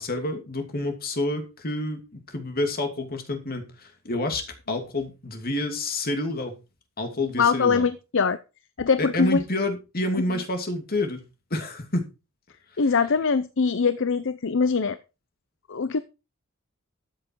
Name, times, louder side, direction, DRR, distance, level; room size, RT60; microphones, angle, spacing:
voice 1, 0.0-6.5 7.0-7.9 9.0-11.2 11.5-12.1 12.7-12.8, left 1 dB, 45° left, 5 dB, 2.7 m, -28 dB
voice 2, 7.4-8.4 8.8-9.4 12.8-15.0 15.7-16.0, left 5 dB, 65° left, 13 dB, 0.7 m, -22 dB
13.5 x 7.5 x 4.7 m, 0.30 s
head